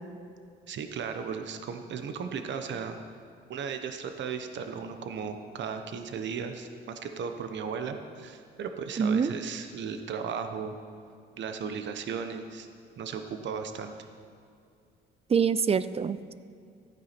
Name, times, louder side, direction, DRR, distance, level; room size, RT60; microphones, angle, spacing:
voice 1, 0.7-3.0 3.5-10.7 11.4-12.7 13.0-13.9, right 6 dB, 65° right, 7 dB, 1.1 m, -36 dB
voice 2, 9.0-9.3 15.3-16.3, right 6 dB, 30° right, 15 dB, 0.5 m, -25 dB
14.0 x 9.4 x 6.0 m, 2.4 s
cardioid pair, 90°, 20 cm